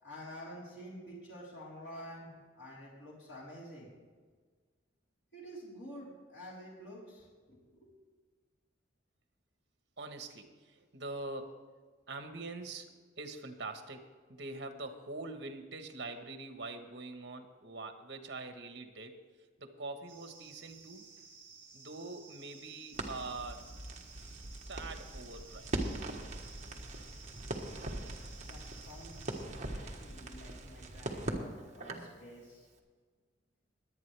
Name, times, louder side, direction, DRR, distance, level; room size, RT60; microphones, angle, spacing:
voice 1, 0.0-2.3 2.6-3.9 5.3-7.9 27.4-27.5 28.4-32.7, equal, 85° left, -6 dB, 4.0 m, -49 dB
voice 2, 10.0-11.6 12.1-12.9 13.2-14.0 14.3-19.1 19.6-21.0 21.7-23.6 24.7-26.0, right 3 dB, 60° right, 6 dB, 1.3 m, -44 dB
sound 1, 20.1-29.5, right 4 dB, 15° right, 2.6 m, -55 dB
Crackle, 22.9-32.2, right 1 dB, 40° right, 1.4 m, -41 dB
22.0 x 8.9 x 3.4 m, 1.5 s
head